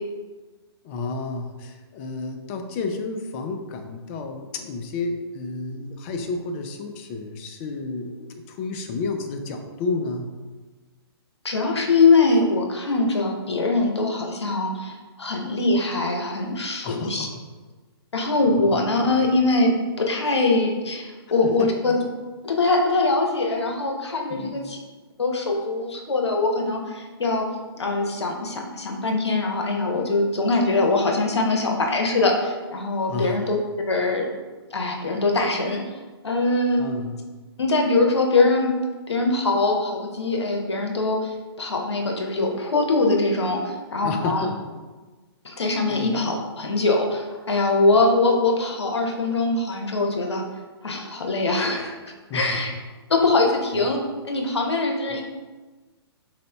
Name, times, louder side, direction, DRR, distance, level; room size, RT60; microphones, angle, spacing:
voice 1, 0.8-10.4 16.8-17.3 18.5-18.8 21.4-21.7 24.3-24.6 33.1-33.4 36.8-37.2 44.0-44.7 45.9-46.2 52.3-52.7 53.8-53.9 55.1-55.2, left 3 dB, 30° left, 5 dB, 0.4 m, -31 dB
voice 2, 11.4-17.3 18.1-22.0 22.4-24.8 25.2-27.5 27.8-33.6 33.9-34.3 34.7-36.0 36.2-36.8 37.6-38.7 39.1-44.5 45.4-50.4 50.8-52.0 52.3-52.7 53.1-55.2, left 3 dB, 85° left, 2 dB, 0.7 m, -22 dB
4.1 x 3.8 x 2.2 m, 1.3 s
hypercardioid pair, 135°, 14 cm